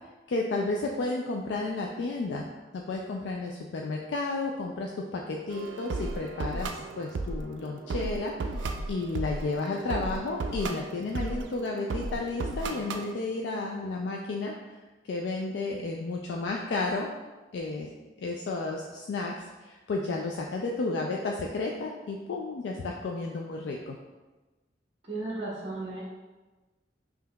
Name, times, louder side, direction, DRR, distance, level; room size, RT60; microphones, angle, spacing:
voice 1, 0.3-2.5 2.7-14.5 15.0-17.1 17.5-17.9 18.2-24.0, left 3 dB, 75° left, 0 dB, 0.3 m, -32 dB
sound 1, 5.5-13.1, right 3 dB, 85° right, 0.3 m, -35 dB
voice 2, 25.1-26.0, right 2 dB, 35° right, -7 dB, 0.7 m, -34 dB
5.4 x 2.8 x 2.2 m, 1.2 s
head